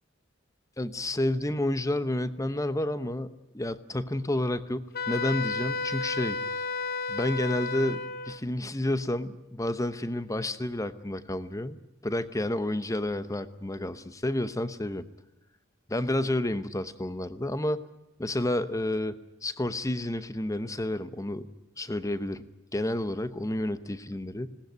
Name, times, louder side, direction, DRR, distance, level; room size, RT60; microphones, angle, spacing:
voice 1, 0.8-6.4 7.1-15.0 15.9-17.8 18.2-21.5 21.8-24.5, left 1 dB, 15° left, 13 dB, 0.9 m, -30 dB
Wind instrument woodwind instrument, 4.9-8.4, left 4 dB, 50° left, 1.0 m, -32 dB
20.5 x 18.0 x 9.4 m, 0.89 s
head